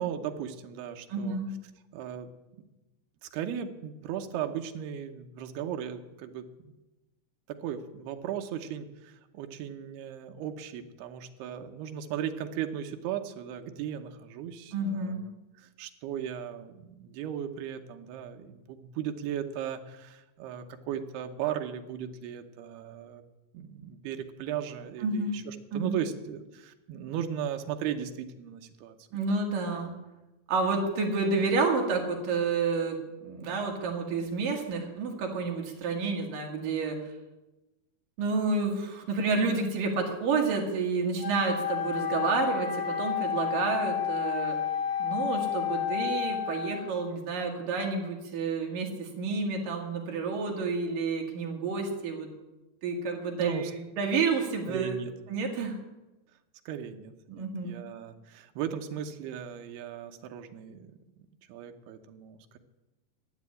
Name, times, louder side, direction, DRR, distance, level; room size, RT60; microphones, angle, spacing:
voice 1, 0.0-1.4 1.9-2.3 3.2-6.7 7.5-15.2 15.6-23.2 23.5-29.0 53.4-53.7 54.7-55.1 56.7-61.0 61.5-62.6, right 9 dB, 75° right, 6 dB, 2.6 m, -37 dB
voice 2, 1.1-1.5 14.7-15.2 25.0-25.3 25.7-26.0 29.1-30.0 30.5-33.0 33.2-37.0 38.2-44.6 45.0-52.3 52.8-55.0 55.3-55.8 57.3-57.9, right 4 dB, 60° right, 1 dB, 3.0 m, -30 dB
Wind instrument woodwind instrument, 41.2-47.1, left 9 dB, 60° left, 1.7 m, -31 dB
12.5 x 8.0 x 9.6 m, 1.0 s
omnidirectional pair, 5.2 m